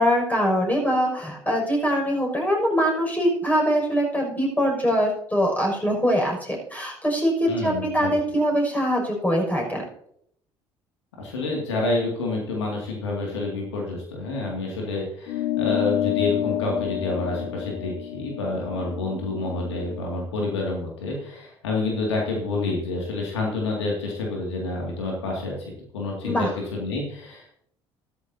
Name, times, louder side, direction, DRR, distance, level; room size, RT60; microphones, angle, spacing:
voice 1, 0.0-9.8 26.2-26.5, equal, 10° left, -1 dB, 6.3 m, -23 dB
voice 2, 7.5-8.1 11.2-27.5, left 2 dB, 80° left, -1 dB, 2.4 m, -28 dB
sound 1, 15.3-20.1, left 13 dB, 65° left, 1.2 m, -29 dB
15.5 x 13.0 x 2.8 m, 0.70 s
figure-of-eight pair, 55°, 14 cm